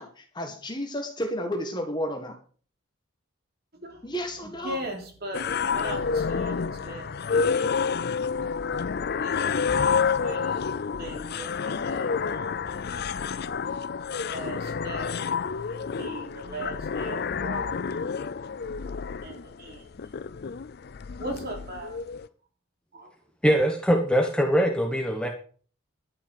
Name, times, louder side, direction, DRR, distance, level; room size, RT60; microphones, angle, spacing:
voice 1, 0.0-2.3 4.0-4.8, equal, 20° left, 4 dB, 1.6 m, -32 dB
voice 2, 4.4-7.1 7.5-8.0 9.2-9.6 10.0-10.6 11.0-12.7 14.1-15.2 15.7-17.8 19.2-19.9 21.2-22.0 22.9-23.1, right 1 dB, 45° right, 2 dB, 3.5 m, -39 dB
sound 1, 5.3-22.3, left 5 dB, 45° left, 0.4 m, -29 dB
voice 3, 23.4-25.3, equal, 5° left, 2 dB, 1.1 m, -22 dB
11.5 x 7.0 x 6.5 m, 0.43 s
head